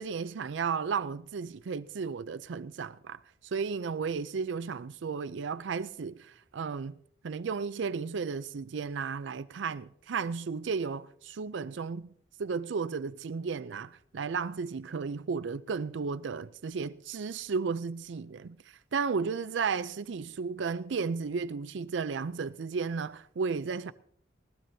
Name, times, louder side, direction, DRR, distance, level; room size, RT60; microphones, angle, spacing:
voice 1, 0.0-6.9 7.2-12.1 12.4-23.9, right 5 dB, 80° right, 0.4 m, -34 dB
20.0 x 16.5 x 2.7 m
head